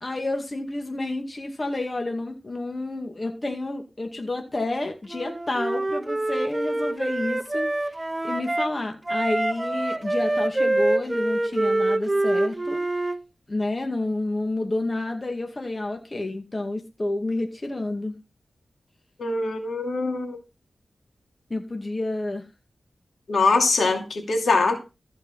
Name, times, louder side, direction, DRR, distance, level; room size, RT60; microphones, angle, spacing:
voice 1, 0.0-7.7 8.2-12.8 13.5-18.2 21.5-22.5, left 2 dB, 35° left, 2.2 m, -29 dB
Wind instrument woodwind instrument, 5.1-8.7 9.1-13.2, right 2 dB, 25° right, 0.8 m, -25 dB
voice 2, 19.2-20.4 23.3-24.8, left 3 dB, 75° left, 2.7 m, -22 dB
14.5 x 4.9 x 5.7 m
cardioid pair, 50°, 0 cm